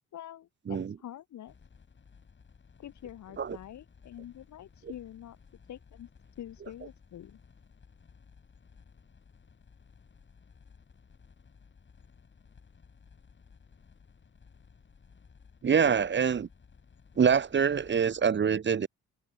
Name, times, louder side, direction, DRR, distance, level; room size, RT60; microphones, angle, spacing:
voice 1, 0.1-1.5 2.8-5.4 5.7-6.1 6.4-7.4, left 11 dB, 70° left, 3.3 m, -46 dB
sound 1, 1.5-18.2, left 5 dB, 40° left, 6.4 m, -57 dB
voice 2, 15.6-16.5 17.2-18.9, right 7 dB, 40° right, 1.1 m, -25 dB
cardioid pair, 90°, 30 cm